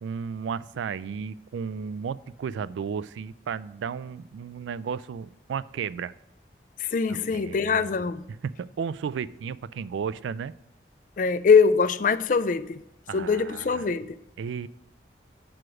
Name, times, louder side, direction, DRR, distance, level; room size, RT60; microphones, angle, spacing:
voice 1, 0.0-6.1 7.1-7.9 8.6-10.5 13.1-13.9 14.4-14.7, right 6 dB, 85° right, 0.3 m, -34 dB
voice 2, 6.8-8.3 11.2-12.8 13.1-14.2, left 5 dB, 45° left, 0.3 m, -23 dB
6.2 x 4.9 x 5.9 m
head